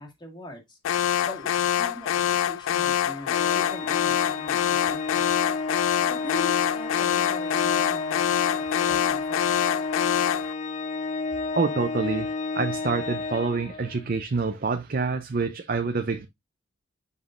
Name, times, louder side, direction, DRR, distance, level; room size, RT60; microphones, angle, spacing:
voice 1, 0.0-5.3 6.0-9.6, left 1 dB, 25° left, 2.0 m, -42 dB
Alarm, 0.9-10.5, left 10 dB, 85° left, 0.3 m, -25 dB
Organ, 3.3-14.1, left 3 dB, 40° left, 0.5 m, -31 dB
voice 2, 11.5-16.3, right 4 dB, 45° right, 0.6 m, -27 dB
7.0 x 5.7 x 2.5 m
head